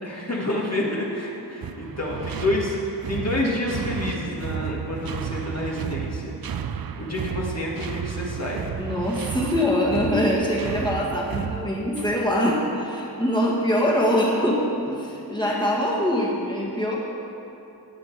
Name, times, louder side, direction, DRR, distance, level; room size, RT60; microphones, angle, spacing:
voice 1, 0.0-6.3 7.0-8.7 15.4-15.9, left 1 dB, 40° left, -4 dB, 1.9 m, -28 dB
sound 1, 1.6-12.4, right 7 dB, 55° right, 0.6 m, -32 dB
voice 2, 8.8-16.9, equal, 10° left, -4 dB, 1.9 m, -23 dB
17.0 x 7.7 x 4.7 m, 2.9 s
wide cardioid pair, 95°, 42 cm